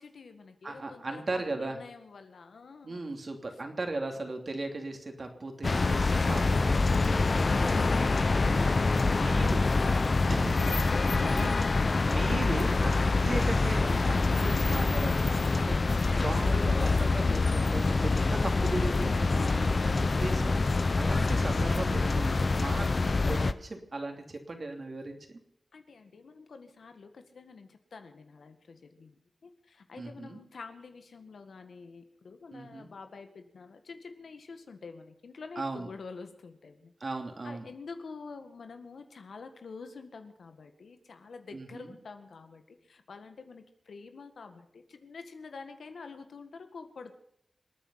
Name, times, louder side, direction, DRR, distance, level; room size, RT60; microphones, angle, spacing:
voice 1, 0.0-3.0 10.6-11.9 25.7-29.1 29.4-36.9 37.4-47.2, left 4 dB, 80° left, 7 dB, 1.7 m, -47 dB
voice 2, 0.6-1.8 2.8-6.8 8.4-9.6 10.3-11.5 12.0-12.9 13.2-25.4 30.0-30.4 32.5-32.9 35.6-35.9 37.0-37.7 41.5-41.9, right 2 dB, 50° right, 4 dB, 2.9 m, -37 dB
sound 1, 5.6-23.5, left 3 dB, 50° left, 0.8 m, -26 dB
26.5 x 9.2 x 5.7 m, 0.74 s
cardioid pair, 65°, 0 cm